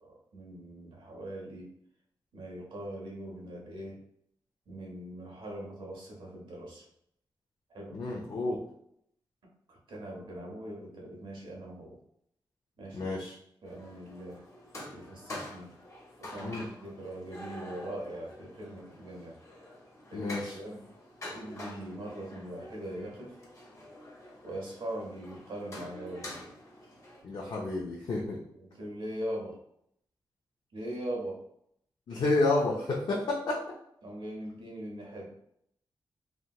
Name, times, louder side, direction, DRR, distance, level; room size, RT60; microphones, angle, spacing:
voice 1, 0.0-1.7 2.3-4.0 4.7-6.8 7.7-8.0 9.7-12.0 12.8-13.1 13.6-14.4 14.9-15.7 16.2-19.4 20.1-20.8 21.2-23.4 24.4-26.5 28.5-29.6 30.7-31.4 34.0-35.3, right 1 dB, 85° right, -2 dB, 1.1 m, -41 dB
voice 2, 7.9-8.6 12.9-13.3 16.4-16.7 20.1-20.6 27.2-28.4 32.1-33.6, left 2 dB, 65° left, -3 dB, 0.5 m, -30 dB
sound 1, 13.7-27.2, left 1 dB, 40° left, 0.9 m, -47 dB
3.2 x 2.8 x 2.3 m, 0.71 s
wide cardioid pair, 165°, 8 cm